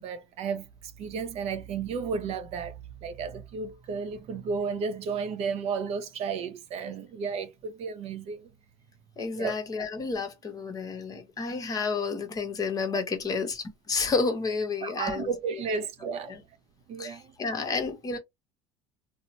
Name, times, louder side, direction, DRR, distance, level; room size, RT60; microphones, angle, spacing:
voice 1, 0.0-2.8 3.0-8.5 9.3-9.5 14.8-16.3 16.9-17.3, right 5 dB, 55° right, 0.6 m, -33 dB
voice 2, 9.2-15.3 16.3-16.4 17.0-18.2, left 4 dB, 30° left, 1.0 m, -30 dB
2.7 x 2.0 x 2.8 m
supercardioid pair, 115°, 13 cm